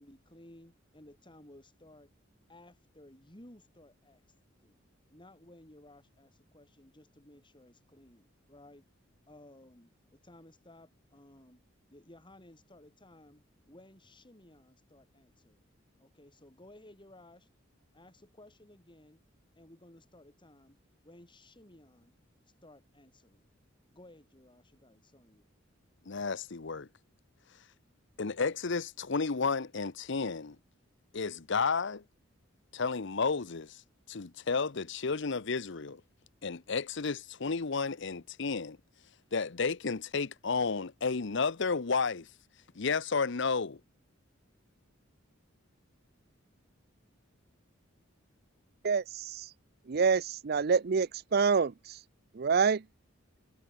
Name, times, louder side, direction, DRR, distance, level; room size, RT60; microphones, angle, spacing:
voice 1, 0.0-2.1 2.5-4.8 5.1-8.8 9.3-11.6 11.9-15.6 16.0-17.5 17.9-19.2 19.6-20.8 21.0-22.1 22.5-23.4 23.9-25.5, left 1 dB, 25° left, 4.1 m, -57 dB
voice 2, 26.1-26.9 28.2-30.6 31.1-32.0 32.7-33.8 34.1-36.0 36.4-38.8 39.3-42.3 42.8-43.8, left 4 dB, 65° left, 0.8 m, -32 dB
voice 3, 48.8-49.5 49.9-52.0 52.3-52.8, right 5 dB, 50° right, 0.5 m, -27 dB
head